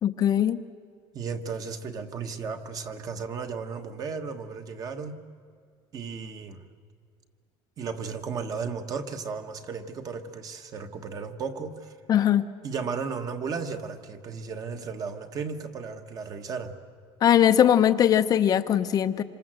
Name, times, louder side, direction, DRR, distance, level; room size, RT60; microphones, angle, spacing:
voice 1, 0.0-0.6 12.1-12.4 17.2-19.2, left 10 dB, 35° left, 9 dB, 0.7 m, -20 dB
voice 2, 1.1-5.1 5.9-6.6 7.8-12.0 12.6-16.8, right 5 dB, 35° right, 7 dB, 1.4 m, -34 dB
27.0 x 26.0 x 7.7 m, 2.1 s
cardioid pair, 160°, 11 cm